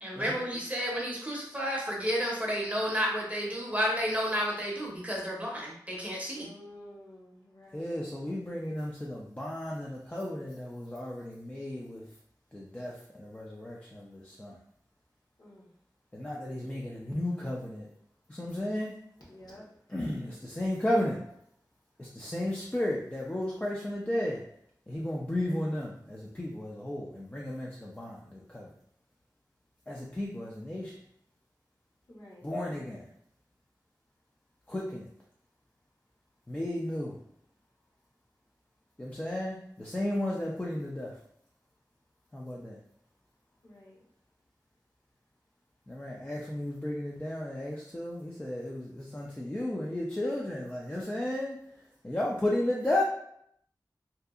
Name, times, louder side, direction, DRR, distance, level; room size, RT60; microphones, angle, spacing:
voice 1, 0.0-6.5, equal, 20° right, -3 dB, 0.7 m, -31 dB
voice 2, 6.3-8.0 15.4-15.7 19.2-19.6 32.1-32.5 43.6-44.0, left 1 dB, 60° left, -6 dB, 1.0 m, -51 dB
voice 3, 7.7-12.1 12.5-14.5 16.1-17.9 18.3-19.0 19.9-21.2 22.0-24.4 24.9-28.7 29.9-30.9 32.4-33.1 34.7-35.1 36.5-37.2 39.0-41.1 42.3-42.8 45.9-51.6 52.0-53.0, left 1 dB, 20° left, -4 dB, 0.4 m, -34 dB
2.7 x 2.3 x 2.4 m, 0.71 s
wide cardioid pair, 70°, 7 cm